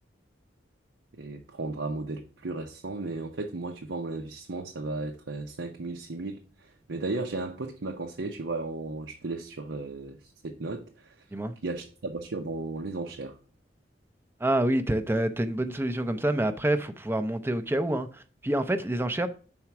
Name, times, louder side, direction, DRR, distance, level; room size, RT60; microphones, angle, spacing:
voice 1, 1.1-11.3 11.6-13.4, right 3 dB, 85° right, 0.8 m, -35 dB
voice 2, 14.4-19.3, right 1 dB, 15° right, 0.5 m, -27 dB
5.8 x 4.3 x 5.8 m
head